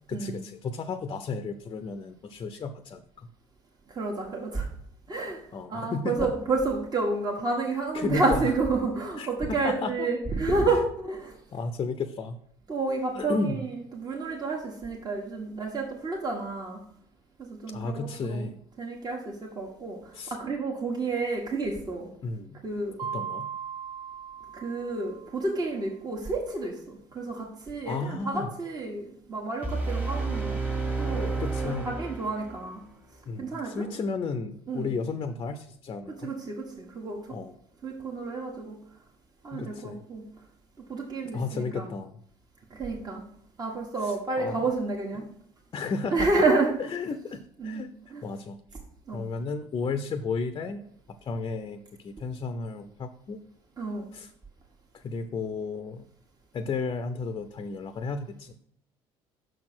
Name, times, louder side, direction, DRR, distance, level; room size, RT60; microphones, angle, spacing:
voice 1, 0.1-3.3 5.5-6.3 7.9-8.5 9.2-9.3 9.6-10.1 11.5-12.4 13.1-13.6 17.7-18.6 20.1-20.3 22.2-22.6 23.0-23.5 27.9-28.5 31.4-31.9 33.3-36.3 37.3-37.5 39.5-40.0 41.3-42.2 44.0-44.6 45.2-45.3 45.7-46.4 46.9-47.9 48.2-48.6 49.1-50.9 51.2-53.4 54.1-54.3 54.9-56.0 56.5-58.5, left 4 dB, 35° left, 9 dB, 0.6 m, -33 dB
voice 2, 3.9-4.7 5.1-5.4 5.7-11.3 12.7-16.8 17.4-18.4 18.8-22.1 22.6-23.0 24.5-30.6 31.0-31.3 31.6-32.8 33.4-33.9 34.7-34.9 36.1-37.2 37.8-38.8 39.4-40.2 40.9-41.9 42.7-43.2 43.6-45.3 46.1-46.7 47.6-47.8 48.1-48.2 49.1-49.2 53.8-54.1, right 3 dB, 35° right, -1 dB, 1.5 m, -30 dB
Mallet percussion, 23.0-25.6, right 7 dB, 70° right, 0.9 m, -38 dB
sound 1, 29.6-32.7, right 3 dB, 10° right, 1.7 m, -30 dB
6.4 x 4.3 x 6.0 m, 0.66 s
supercardioid pair, 90°, 12 cm